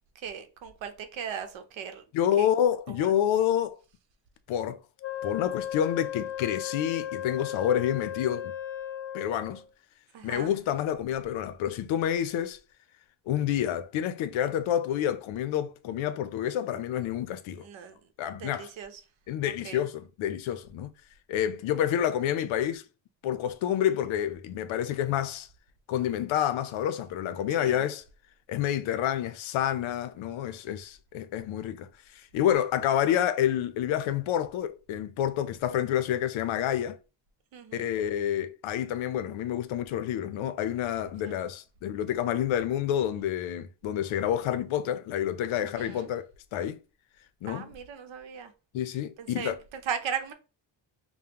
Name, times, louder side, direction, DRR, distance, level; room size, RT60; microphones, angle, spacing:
voice 1, 0.1-2.0 2.4-2.5 3.0-3.1 10.1-10.5 17.6-18.0 18.2-19.0 19.4-19.8 27.6-27.8 37.5-37.9 41.2-41.4 45.6-46.1 47.5-48.5 49.2-50.3, right 7 dB, 75° right, 0.8 m, -38 dB
voice 2, 2.1-3.8 4.5-4.8 5.2-8.6 9.1-9.6 10.2-12.6 13.3-17.6 18.2-18.7 19.3-20.9 21.3-22.8 23.2-25.5 25.9-28.0 28.5-37.0 37.7-46.3 46.5-46.8 47.4-47.7 48.7-49.6, left 10 dB, 80° left, 0.6 m, -28 dB
Wind instrument woodwind instrument, 5.0-9.6, left 10 dB, 30° left, 0.4 m, -36 dB
5.2 x 2.1 x 2.8 m
cardioid pair, 145°, 46 cm